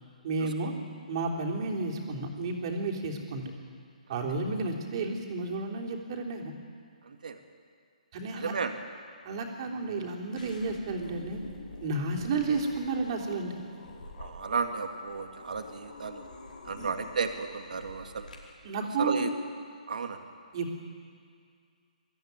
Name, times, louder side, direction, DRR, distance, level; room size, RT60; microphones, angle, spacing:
voice 1, 0.2-0.7 1.1-3.5 4.1-6.5 8.1-8.5 9.2-11.4 11.8-13.6 16.8-16.9 18.6-19.3 20.5-20.9, right 3 dB, 40° right, 0 dB, 3.4 m, -32 dB
voice 2, 8.4-8.7 14.2-16.2 16.7-18.3 19.0-19.3 19.9-20.2, right 5 dB, 70° right, 6 dB, 2.0 m, -33 dB
sound 1, 10.4-18.4, left 2 dB, 80° left, 5.1 m, -47 dB
23.0 x 14.5 x 9.6 m, 2.2 s
hypercardioid pair, 155°, 4 cm